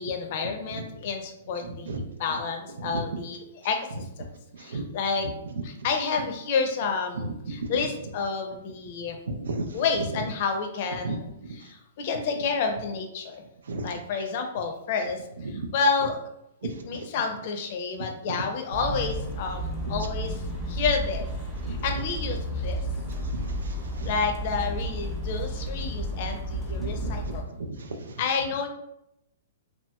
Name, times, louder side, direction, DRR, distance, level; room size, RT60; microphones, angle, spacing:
voice 1, 0.0-4.3 4.6-5.3 5.6-9.2 9.7-13.4 13.8-15.2 15.5-16.2 16.6-20.4 20.7-21.2 21.7-22.8 24.0-27.5 28.2-28.7, left 5 dB, 50° left, 4 dB, 0.5 m, -30 dB
voice 2, 9.3-9.7 11.0-11.2 13.7-13.9 16.6-16.7 21.7-21.8 23.3-24.1 26.8-27.1 27.6-27.9, right 3 dB, 85° right, 5 dB, 0.4 m, -33 dB
sound 1, 18.7-27.4, right 1 dB, 5° right, 0.6 m, -32 dB
2.9 x 2.8 x 2.2 m, 0.82 s
hypercardioid pair, 145°, 0 cm